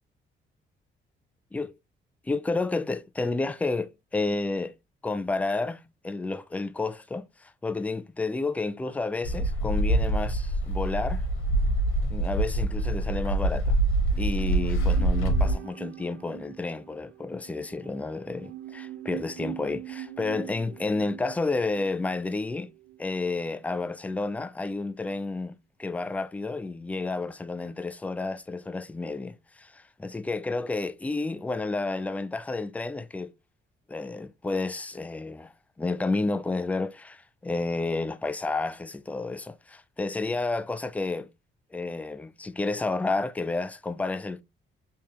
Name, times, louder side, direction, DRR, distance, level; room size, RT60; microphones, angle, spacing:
voice 1, 2.3-4.7 5.0-11.2 12.1-13.8 14.2-22.7 23.0-33.3 33.9-35.5 35.8-41.3 41.7-44.4, left 3 dB, 5° left, 0.3 m, -31 dB
sound 1, 9.2-15.5, right 1 dB, 85° left, 1.1 m, -25 dB
sound 2, 14.1-23.4 23.7-23.8, right 13 dB, 90° right, 0.7 m, -43 dB
3.4 x 3.2 x 2.8 m
cardioid pair, 90°, 20 cm